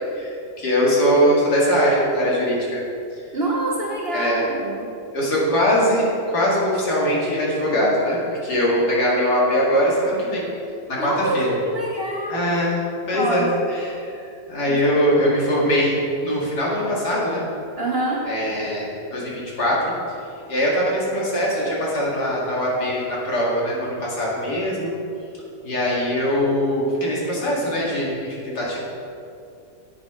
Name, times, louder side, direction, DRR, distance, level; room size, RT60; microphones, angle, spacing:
voice 1, 0.1-2.8 4.1-4.5 5.1-10.5 10.9-11.6 12.3-12.8 13.1-14.2 14.5-16.0 16.2-17.4 18.3-19.9 20.5-24.9 25.6-28.8, equal, 70° left, -5 dB, 2.7 m, -21 dB
voice 2, 3.3-5.0 11.0-12.6 13.1-13.5 14.7-15.0 15.6-15.7 17.8-18.3, right 2 dB, 45° right, -2 dB, 0.9 m, -26 dB
10.0 x 8.2 x 3.7 m, 2.6 s
omnidirectional pair, 1.8 m